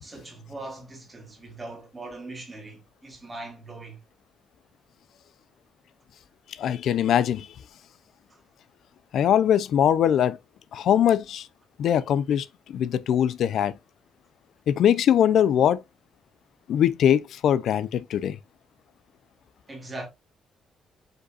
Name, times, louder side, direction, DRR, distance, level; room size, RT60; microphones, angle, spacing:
voice 1, 0.0-4.0 8.3-8.4 19.7-20.1, right 2 dB, 15° right, 2.3 m, -40 dB
voice 2, 6.6-7.5 9.1-10.4 10.7-11.4 11.8-12.4 12.7-13.7 14.7-15.8 16.7-18.4, left 9 dB, 65° left, 0.4 m, -21 dB
5.2 x 4.0 x 2.4 m
cardioid pair, 125°, 0 cm